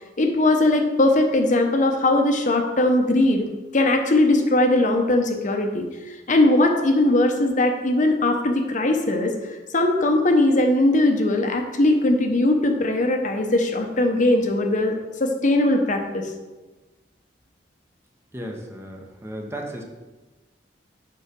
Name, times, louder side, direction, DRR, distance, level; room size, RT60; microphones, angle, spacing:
voice 1, 0.2-3.4 3.7-5.9 6.3-9.3 9.7-16.3, left 2 dB, 45° left, 4 dB, 0.9 m, -20 dB
voice 2, 18.3-19.8, right 1 dB, 15° right, 1 dB, 1.0 m, -34 dB
6.9 x 5.6 x 5.2 m, 1.2 s
head